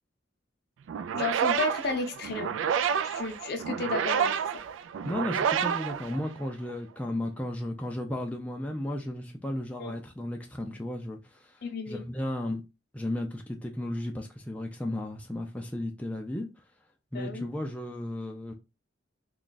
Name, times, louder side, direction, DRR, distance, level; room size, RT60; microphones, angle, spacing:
sound 1, 0.9-6.7, right 8 dB, 85° right, 0.3 m, -29 dB
voice 1, 1.1-2.6 3.0-4.6 9.8-9.9 11.6-12.0 17.1-17.5, left 3 dB, 55° left, 0.6 m, -33 dB
voice 2, 5.0-12.6 12.9-16.6 17.1-18.5, left 1 dB, 5° left, 0.4 m, -34 dB
3.1 x 2.4 x 3.9 m
head